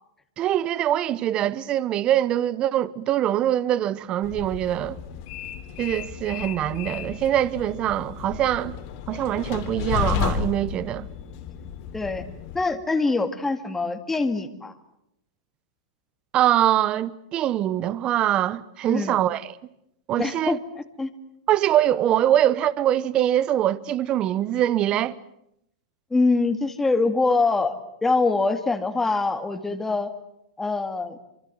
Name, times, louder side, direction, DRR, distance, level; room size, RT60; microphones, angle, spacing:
voice 1, 0.4-5.0 5.8-8.7 9.1-11.1 16.3-19.6 20.1-20.6 21.5-25.2, right 12 dB, 30° right, 1.0 m, -23 dB
Train, 4.2-12.6, left 9 dB, 50° left, 3.2 m, -33 dB
voice 2, 11.9-12.2 12.5-14.7 18.9-19.2 20.2-21.1 26.1-27.8 28.0-30.1 30.6-31.2, left 3 dB, 10° left, 2.1 m, -24 dB
26.0 x 24.5 x 7.8 m
hypercardioid pair, 125°, 3 cm